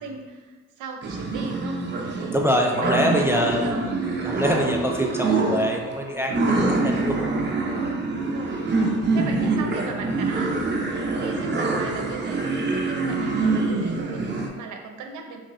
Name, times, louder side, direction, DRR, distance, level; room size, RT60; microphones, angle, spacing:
voice 1, 0.0-1.8 2.2-2.4 2.8-3.8 5.1-5.6 8.2-8.9 9.1-15.4, right 5 dB, 85° right, 3 dB, 0.7 m, -38 dB
sound 1, 1.0-14.5, right 3 dB, 35° right, 0.8 m, -25 dB
voice 2, 2.3-3.6 4.3-7.4, equal, 10° right, 1 dB, 0.4 m, -24 dB
5.2 x 3.2 x 2.6 m, 1.3 s
cardioid pair, 90°, 30 cm